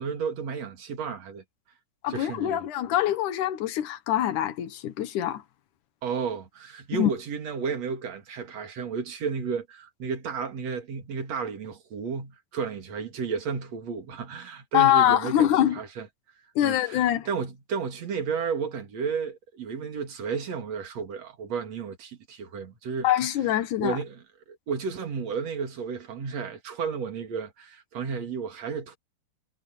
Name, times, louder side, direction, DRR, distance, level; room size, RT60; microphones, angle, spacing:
voice 1, 0.0-1.4 2.1-2.6 6.0-16.1 16.6-23.1 23.8-29.0, right 6 dB, 45° right, 3.0 m, -32 dB
voice 2, 2.0-5.4 6.9-7.1 14.7-15.8 16.6-17.3 23.0-24.0, left 12 dB, 70° left, 1.9 m, -24 dB
omnidirectional pair, 5.2 m